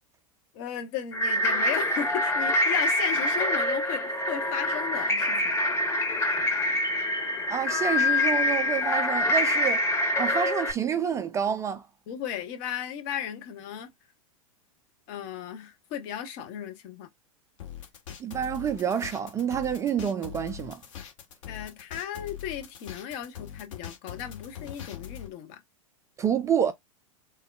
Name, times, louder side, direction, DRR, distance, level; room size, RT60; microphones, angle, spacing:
voice 1, 0.5-5.6 12.1-13.9 15.1-17.1 21.5-25.6, left 9 dB, 45° left, 0.8 m, -35 dB
sound 1, 1.1-10.7, left 1 dB, 15° left, 0.9 m, -25 dB
voice 2, 7.5-9.9 10.2-11.9 18.2-20.8 26.2-26.7, right 8 dB, 15° right, 0.3 m, -28 dB
sound 2, 17.6-25.3, left 10 dB, 60° left, 1.2 m, -42 dB
3.5 x 2.1 x 2.2 m
figure-of-eight pair, 95°, 18 cm